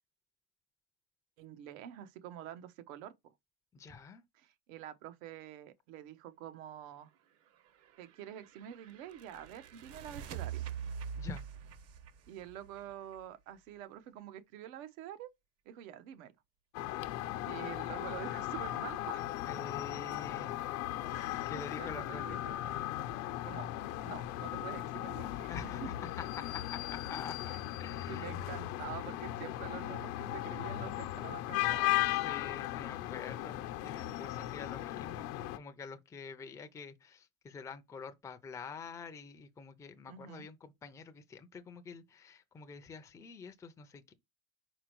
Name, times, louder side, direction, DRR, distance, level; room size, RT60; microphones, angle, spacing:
voice 1, 1.4-3.3 4.4-7.1 8.0-10.6 12.3-15.3 15.6-16.3 17.4-19.3 21.1-21.3 21.7-22.5 23.4-23.7 24.0-25.9 28.1-31.9 40.1-40.4, right 11 dB, 85° right, 1.1 m, -47 dB
voice 2, 3.7-4.2 11.2-11.4 19.4-20.5 21.3-22.2 25.4-27.4 27.8-28.4 32.1-33.6 33.8-35.3 35.5-44.1, left 5 dB, 10° left, 0.4 m, -47 dB
sound 1, 7.7-13.5, right 8 dB, 40° right, 0.7 m, -44 dB
sound 2, 16.7-35.6, left 15 dB, 85° left, 0.8 m, -37 dB
5.0 x 4.4 x 4.5 m
cardioid pair, 145°, 40 cm